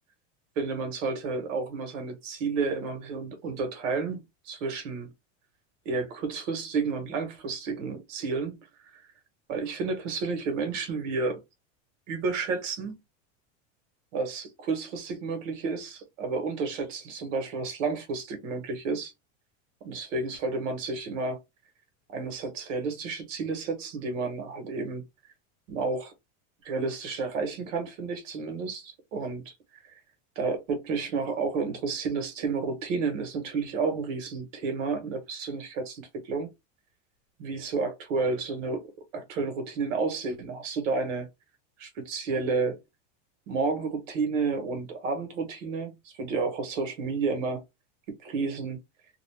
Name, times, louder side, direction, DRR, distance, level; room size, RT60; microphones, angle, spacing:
voice 1, 0.5-5.1 5.8-8.6 8.8-9.0 9.5-11.4 12.1-13.0 14.1-19.1 19.8-21.4 22.1-25.0 25.7-26.1 26.6-29.8 30.3-36.5 37.4-38.8 39.1-41.3 41.8-42.8 43.5-47.6 48.2-48.8, right 4 dB, 85° right, 1.3 m, -31 dB
2.6 x 2.4 x 3.3 m
supercardioid pair, 170°, 37 cm